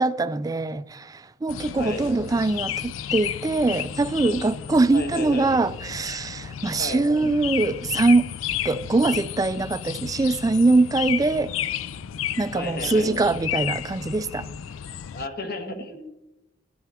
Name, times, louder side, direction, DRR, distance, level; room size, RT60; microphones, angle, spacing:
voice 1, 0.0-8.3 8.6-11.5 12.4-14.5 15.8-15.9, right 3 dB, 20° right, 0.3 m, -23 dB
sound 1, 1.5-15.3, left 10 dB, 85° left, 0.4 m, -33 dB
voice 2, 1.8-2.1 4.9-5.5 6.8-7.0 12.5-13.1 15.1-16.1, left 2 dB, 50° left, 1.3 m, -33 dB
11.5 x 8.9 x 3.5 m
head